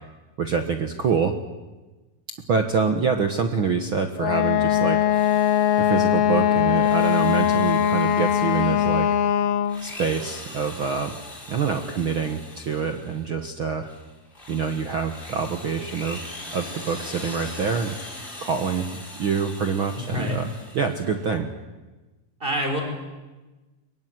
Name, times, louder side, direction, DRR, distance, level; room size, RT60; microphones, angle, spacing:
voice 1, 0.4-1.3 2.5-5.0 5.8-9.1 9.8-11.2 11.5-13.9 14.5-16.2 16.5-17.9 18.4-18.9 19.2-21.5, right 5 dB, 70° right, 6 dB, 1.2 m, -26 dB
Wind instrument woodwind instrument, 4.2-9.9, left 10 dB, 85° left, 3.1 m, -21 dB
Drill, 5.1-6.1 6.6-9.0 9.6-13.3 13.8-21.2, left 1 dB, 15° left, 4.8 m, -41 dB
voice 2, 19.9-20.4 22.4-22.8, equal, 15° right, 2 dB, 5.4 m, -26 dB
22.5 x 22.0 x 9.5 m, 1.2 s
omnidirectional pair, 4.3 m